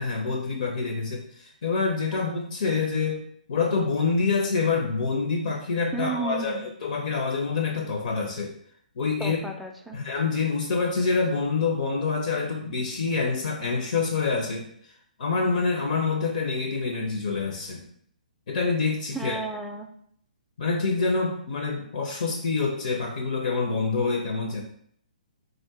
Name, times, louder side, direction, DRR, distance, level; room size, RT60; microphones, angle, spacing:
voice 1, 0.0-3.2 3.5-8.5 9.0-9.4 9.9-14.7 15.2-17.8 18.5-19.4 20.6-24.6, left 4 dB, 60° left, 2 dB, 0.6 m, -26 dB
voice 2, 5.9-6.7 9.2-10.0 19.1-19.9, right 3 dB, ahead, 3 dB, 0.4 m, -33 dB
3.7 x 2.5 x 3.5 m, 0.66 s
figure-of-eight pair, 130°, 5 cm